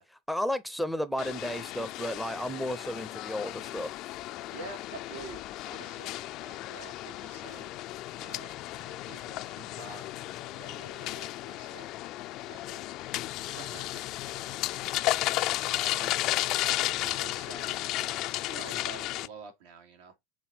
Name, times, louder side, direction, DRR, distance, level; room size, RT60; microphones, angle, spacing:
voice 1, 0.0-3.9, left 1 dB, ahead, 0.6 m, -33 dB
sound 1, 1.2-19.3, left 16 dB, 45° left, 0.4 m, -34 dB
voice 2, 4.5-7.7 8.2-11.9 12.4-12.9 13.4-14.0 15.6-16.3 16.6-18.0 18.5-20.1, right 4 dB, 90° right, 2.7 m, -48 dB
6.0 x 4.3 x 4.4 m
supercardioid pair, 145°, 0 cm